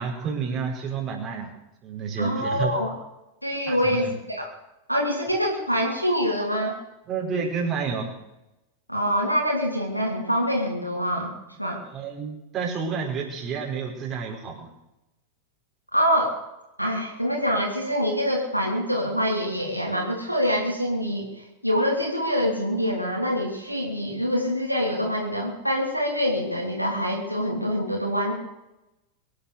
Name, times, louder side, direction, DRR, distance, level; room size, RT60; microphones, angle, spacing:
voice 1, 0.0-1.5 1.8-2.8 3.7-4.1 7.1-8.1 11.9-14.7, right 5 dB, 25° right, -1 dB, 4.9 m, -30 dB
voice 2, 2.2-2.9 3.4-4.5 4.9-6.8 8.9-11.3 11.6-11.8 15.9-16.4 16.8-21.3 21.6-28.3, equal, 90° right, -1 dB, 2.9 m, -25 dB
23.5 x 8.7 x 6.7 m, 0.94 s
figure-of-eight pair, 90°, 0 cm